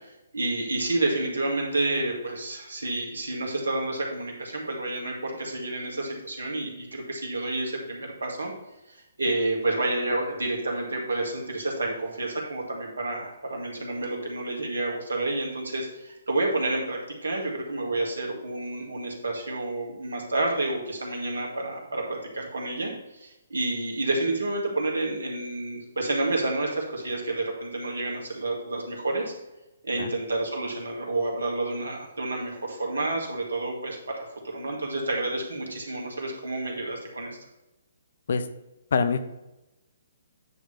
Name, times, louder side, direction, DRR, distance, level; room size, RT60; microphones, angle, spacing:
voice 1, 0.3-8.5 8.9-29.3 29.8-37.3, right 2 dB, 75° right, -1 dB, 2.0 m, -29 dB
voice 2, 30.0-30.1 38.3-38.5 38.9-39.2, left 5 dB, 60° left, 10 dB, 0.7 m, -24 dB
9.4 x 3.3 x 5.6 m, 0.97 s
figure-of-eight pair, 135°, 0 cm